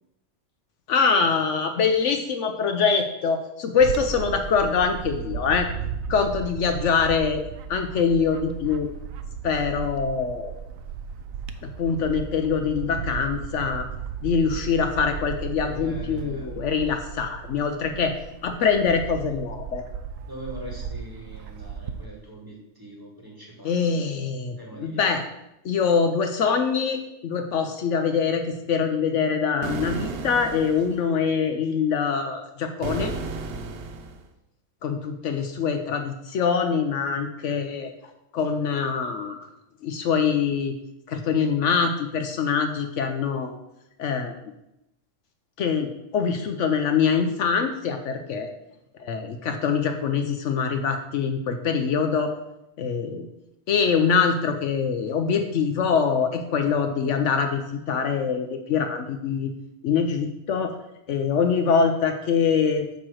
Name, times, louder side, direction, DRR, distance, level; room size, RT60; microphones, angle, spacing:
voice 1, 0.9-5.7 6.1-7.4 7.7-8.9 9.4-10.5 11.6-13.8 14.2-18.2 18.4-19.8 23.6-25.2 25.6-33.1 34.8-37.9 38.3-39.5 39.8-40.8 41.1-43.6 44.0-44.3 45.6-48.5 49.0-52.3 52.8-53.3 53.7-59.5 59.8-60.8 61.1-62.9, left 6 dB, 70° left, 6 dB, 0.9 m, -24 dB
Bird / Wind, 3.8-22.1, right 7 dB, 90° right, 1.0 m, -35 dB
voice 2, 15.6-16.6 20.3-25.1, right 1 dB, 15° right, -2 dB, 1.4 m, -42 dB
sound 1, 29.6-31.0 32.8-34.3, right 4 dB, 55° right, 0.8 m, -33 dB
8.3 x 3.0 x 6.3 m, 0.88 s
omnidirectional pair, 1.4 m